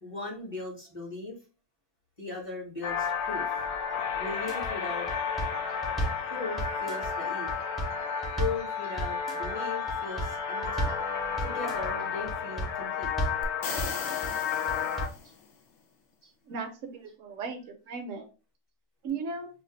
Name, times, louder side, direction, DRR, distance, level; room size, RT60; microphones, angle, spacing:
voice 1, 0.0-1.4 2.2-3.7 4.1-5.1 6.2-7.6 8.3-10.9 11.4-13.3 15.2-15.3 16.2-16.3, left 4 dB, 30° left, -2 dB, 0.8 m, -38 dB
sound 1, 2.8-15.1, left 6 dB, 90° left, 1.1 m, -32 dB
sound 2, 4.3-4.7 5.1-6.2 6.6-7.1 7.5-8.6 9.0-9.5 9.9-10.3 10.6-11.0 11.4-11.9 12.3-12.7 13.0-13.4 13.8-14.3 14.7-15.2, right 2 dB, ahead, 0.4 m, -33 dB
sound 3, 13.4-15.5, left 5 dB, 70° left, 0.9 m, -37 dB
voice 2, 16.5-18.3 19.0-19.5, right 4 dB, 70° right, 5 dB, 0.9 m, -36 dB
2.5 x 2.3 x 3.8 m, 0.34 s
omnidirectional pair, 1.5 m